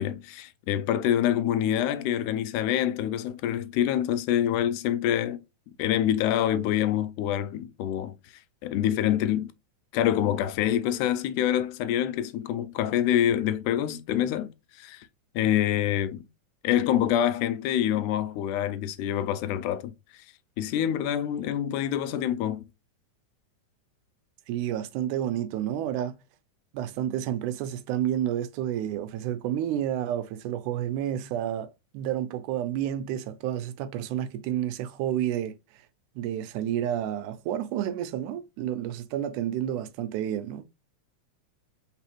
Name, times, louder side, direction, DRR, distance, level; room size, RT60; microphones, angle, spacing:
voice 1, 0.0-5.4 5.8-8.2 8.6-9.5 9.9-14.5 14.8-15.1 15.4-16.3 16.6-19.9 20.6-22.6, left 11 dB, 85° left, 2.0 m, -26 dB
voice 2, 24.5-26.2 26.7-35.6 36.2-40.6, right 11 dB, 85° right, 2.0 m, -30 dB
4.1 x 4.1 x 3.0 m
omnidirectional pair, 3.6 m